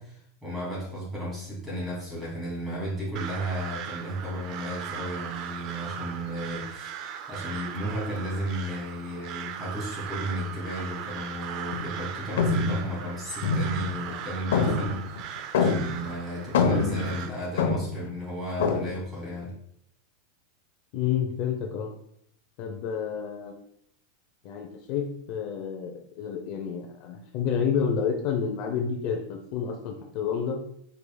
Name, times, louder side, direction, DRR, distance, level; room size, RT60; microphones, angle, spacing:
voice 1, 0.0-7.0 7.3-19.5, equal, 10° right, -5 dB, 2.6 m, -34 dB
Crow, 3.2-17.3, right 8 dB, 35° right, 0.5 m, -38 dB
sound 1, 11.7-12.0 12.4-14.2 14.5-16.1 16.4-18.1 18.6-18.9, left 4 dB, 85° left, 0.8 m, -26 dB
voice 2, 20.9-21.9 22.6-23.6 24.4-30.6, left 7 dB, 40° left, 3 dB, 0.7 m, -29 dB
8.2 x 4.9 x 2.3 m, 0.71 s
supercardioid pair, 165°, 0 cm